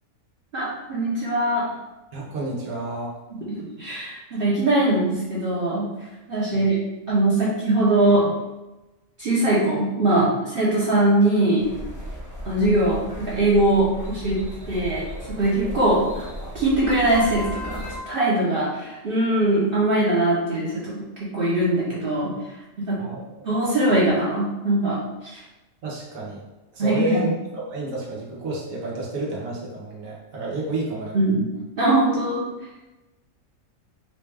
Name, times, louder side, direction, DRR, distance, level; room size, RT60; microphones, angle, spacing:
voice 1, 0.5-1.6 3.5-5.9 6.3-6.8 7.1-8.3 9.2-11.6 12.4-14.4 14.7-16.2 16.5-21.0 21.3-22.3 22.8-22.9 23.4-25.4 26.8-27.2 31.1-31.5 31.8-32.4, right 1 dB, 50° right, -8 dB, 0.9 m, -21 dB
voice 2, 2.1-3.1 6.5-6.7 23.0-23.4 25.8-26.4 26.7-31.2, right 2 dB, 90° right, -4 dB, 1.3 m, -30 dB
sound 1, 11.6-18.0, equal, 30° right, 0.3 m, -35 dB
4.2 x 2.3 x 3.3 m, 1.1 s
omnidirectional pair, 1.4 m